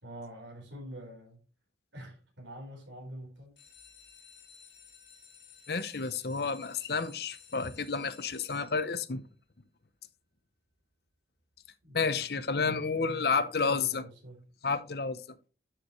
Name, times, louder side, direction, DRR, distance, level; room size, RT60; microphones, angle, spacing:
voice 1, 0.0-1.4 1.9-3.5 11.8-14.4, right 1 dB, 90° right, 4.4 m, -46 dB
sound 1, 3.4-9.2 9.8-10.3 10.7-10.8 11.0-11.1 11.5-11.7, left 6 dB, 80° left, 4.4 m, -56 dB
voice 2, 5.7-9.2 11.9-14.0 14.6-15.2, left 4 dB, 55° left, 0.8 m, -30 dB
12.0 x 6.6 x 3.1 m
head